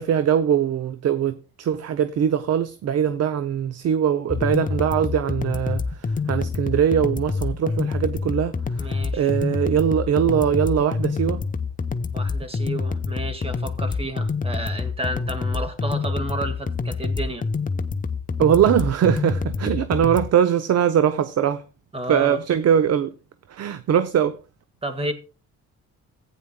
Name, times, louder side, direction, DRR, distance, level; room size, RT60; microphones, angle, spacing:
voice 1, 0.0-11.4 18.4-21.6 22.1-23.1 23.5-24.4, right 9 dB, 55° right, 0.7 m, -21 dB
sound 1, 4.3-20.3, left 4 dB, 25° left, 0.8 m, -27 dB
voice 2, 8.8-9.3 12.1-17.4 21.9-22.4 24.8-25.1, right 1 dB, 20° right, 1.9 m, -31 dB
15.5 x 9.2 x 2.3 m
cardioid pair, 90°, 30 cm